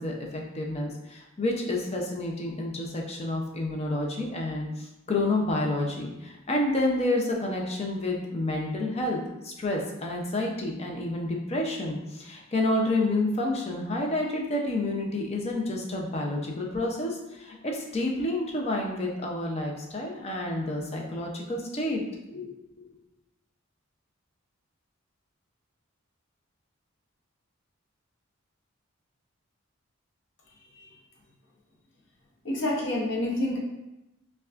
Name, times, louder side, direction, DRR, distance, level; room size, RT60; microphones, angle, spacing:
voice 1, 0.0-22.0 22.3-22.9, left 2 dB, 30° left, 0 dB, 0.5 m, -29 dB
voice 2, 32.4-33.6, left 1 dB, 60° left, -2 dB, 0.8 m, -28 dB
5.6 x 2.3 x 2.4 m, 0.94 s
head